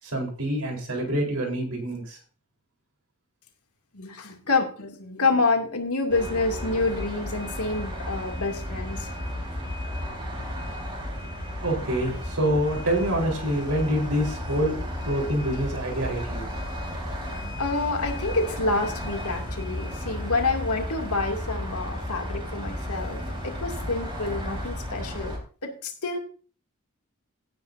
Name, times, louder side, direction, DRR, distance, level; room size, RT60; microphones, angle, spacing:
voice 1, 0.0-2.2 11.6-16.5, right 1 dB, 80° right, 0 dB, 4.1 m, -26 dB
voice 2, 3.9-9.2 15.5-15.6 17.6-25.3 25.6-26.2, left 3 dB, 85° left, 3 dB, 2.6 m, -28 dB
sound 1, 6.1-25.4, equal, 25° right, 4.3 m, -33 dB
17.5 x 9.4 x 2.7 m, 0.39 s
head